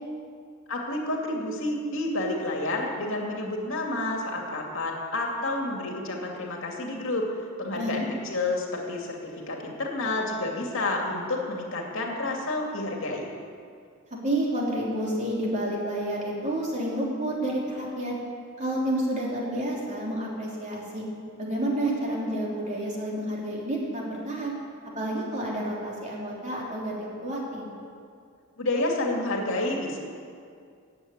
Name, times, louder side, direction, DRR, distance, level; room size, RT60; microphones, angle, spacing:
voice 1, 0.7-7.3 7.6-13.2 28.6-30.0, left 2 dB, 65° left, 0 dB, 2.4 m, -29 dB
voice 2, 7.7-8.1 14.2-18.2 18.6-21.0 21.4-24.5 25.0-27.7, right 1 dB, 35° right, -4 dB, 3.4 m, -29 dB
15.5 x 7.9 x 9.5 m, 2.3 s
head